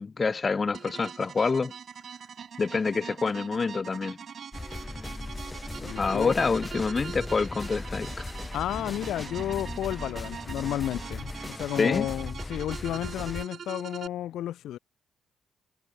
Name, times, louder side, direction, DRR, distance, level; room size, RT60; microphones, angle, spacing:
voice 1, 0.0-1.7 2.6-4.2 6.0-8.3 11.8-12.1, left 4 dB, 35° left, 1.1 m, -27 dB
sound 1, 0.7-14.1, right 7 dB, 50° right, 2.0 m, -43 dB
sound 2, 4.5-13.4, left 2 dB, 15° left, 5.5 m, -38 dB
voice 2, 5.8-6.4 8.5-14.8, left 12 dB, 80° left, 0.8 m, -32 dB
cardioid pair, 90°, 0 cm